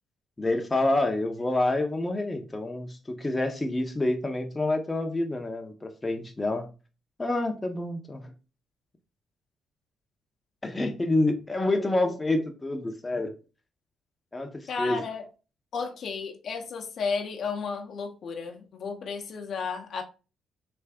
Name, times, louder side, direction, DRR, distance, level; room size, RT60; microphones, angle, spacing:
voice 1, 0.4-6.7 7.2-8.3 10.6-13.3 14.3-15.0, left 2 dB, 15° left, 0.7 m, -28 dB
voice 2, 14.7-15.2 15.7-20.0, left 5 dB, 60° left, 0.7 m, -33 dB
3.4 x 2.5 x 3.5 m
cardioid pair, 90°, 0 cm